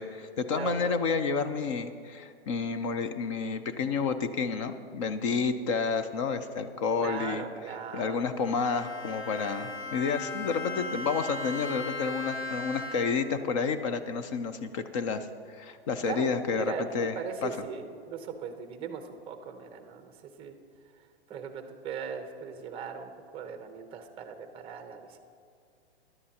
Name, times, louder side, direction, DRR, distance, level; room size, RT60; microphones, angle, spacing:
voice 1, 0.0-7.4 7.9-17.1 17.4-17.5, left 5 dB, 30° left, 10 dB, 0.4 m, -30 dB
voice 2, 0.5-1.0 7.0-8.2 16.0-16.9 17.1-20.6 21.3-25.2, right 6 dB, 15° right, 7 dB, 0.8 m, -39 dB
Bowed string instrument, 8.4-13.4, left 2 dB, 65° left, 2.5 m, -38 dB
16.0 x 11.0 x 2.8 m, 2.3 s
hypercardioid pair, 145°, 33 cm